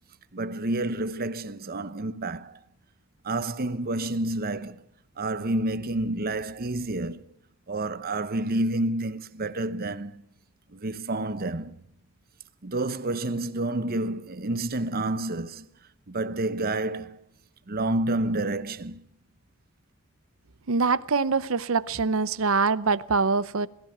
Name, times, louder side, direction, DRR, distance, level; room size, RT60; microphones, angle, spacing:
voice 1, 0.3-2.6 3.2-4.8 5.2-7.2 7.7-10.2 10.7-11.8 12.6-15.7 16.1-17.2 17.7-19.0, right 2 dB, 45° right, 0.9 m, -29 dB
voice 2, 20.7-23.7, right 4 dB, 75° right, 0.7 m, -24 dB
21.5 x 15.5 x 9.1 m
head